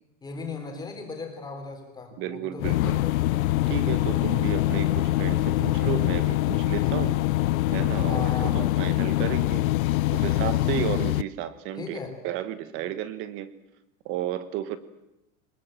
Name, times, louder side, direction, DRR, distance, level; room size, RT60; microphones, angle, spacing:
voice 1, 0.2-3.2 8.0-8.5 11.8-12.1, left 4 dB, 10° left, 3 dB, 3.7 m, -37 dB
voice 2, 2.2-3.0 3.7-7.2 7.7-9.6 10.1-12.0 12.2-13.5 14.0-14.8, right 11 dB, 30° right, 14 dB, 1.3 m, -32 dB
sound 1, 2.6-11.2, left 16 dB, 90° left, 0.9 m, -24 dB
24.0 x 21.0 x 8.9 m, 0.92 s
supercardioid pair, 180°, 40 cm